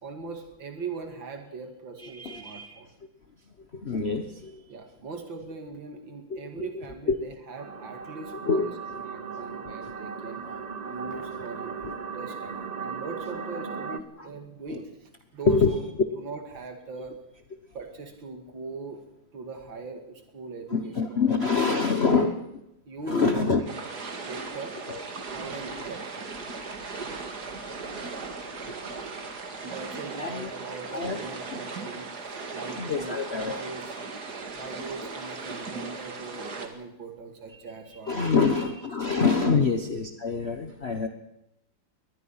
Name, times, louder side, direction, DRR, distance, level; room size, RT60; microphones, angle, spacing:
voice 1, 0.0-2.9 4.7-10.4 10.8-11.9 12.1-15.8 16.1-17.1 17.7-19.0 19.3-21.8 22.1-22.4 22.9-23.8 24.2-24.8 25.3-26.2 29.6-33.9 34.5-38.6 39.5-39.6, right 4 dB, 75° right, 5 dB, 3.1 m, -40 dB
voice 2, 2.0-2.8 3.7-4.6 6.3-7.1 8.5-8.7 14.2-14.3 14.7-14.8 15.5-15.8 20.7-22.3 23.1-23.6 24.9-25.0 26.9-27.6 28.6-28.8 30.2-30.5 30.9-31.2 31.5-31.6 32.8-33.6 37.5-37.6 38.1-41.1, left 4 dB, 40° left, 7 dB, 1.3 m, -26 dB
sound 1, 7.6-14.0, right 5 dB, 40° right, 0.6 m, -37 dB
sound 2, 23.7-36.7, right 4 dB, 55° right, 2.7 m, -38 dB
23.5 x 19.5 x 5.8 m, 0.84 s
omnidirectional pair, 2.1 m